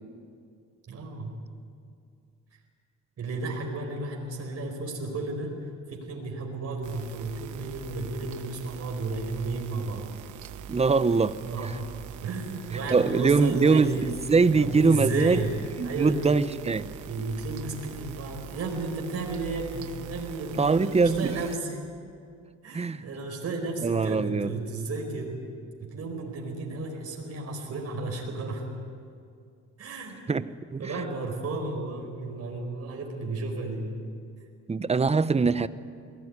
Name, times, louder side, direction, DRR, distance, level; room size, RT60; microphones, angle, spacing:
voice 1, 0.9-1.3 3.2-5.5 5.9-10.1 11.4-11.7 12.2-14.1 14.5-15.6 15.8-16.3 17.1-21.8 22.6-25.4 25.8-28.6 29.8-30.2 30.8-33.9, right 3 dB, 55° right, 1 dB, 4.6 m, -33 dB
sound 1, 6.8-21.6, right 9 dB, 80° right, 1.1 m, -44 dB
voice 2, 10.7-11.4 12.9-15.4 15.8-16.9 20.6-21.3 22.7-23.0 23.8-24.5 30.3-30.4 30.7-31.1 34.7-35.7, right 4 dB, 20° right, 15 dB, 0.8 m, -23 dB
22.0 x 18.0 x 9.6 m, 2.3 s
cardioid pair, 90°, 30 cm